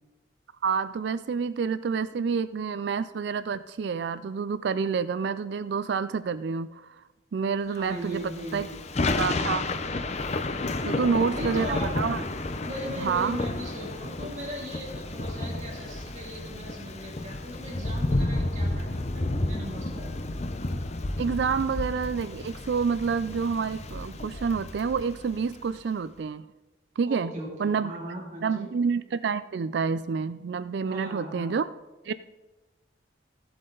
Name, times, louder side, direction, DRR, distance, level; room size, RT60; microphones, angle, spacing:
voice 1, 0.6-6.9 7.3-8.2 8.5-8.7 9.2-9.7 10.8-12.2 13.0-13.4 21.2-26.4 27.0-27.3 27.6-27.9 28.4-31.7 32.1-32.2, right 5 dB, 65° right, 14 dB, 0.3 m, -28 dB
voice 2, 7.7-8.8 10.8-11.9 12.6-20.3 27.1-28.7 30.9-31.5, equal, 40° right, -3 dB, 2.7 m, -38 dB
Thunder / Rain, 8.1-25.6, left 2 dB, 35° left, 0.6 m, -31 dB
15.0 x 7.8 x 3.8 m, 1.1 s
head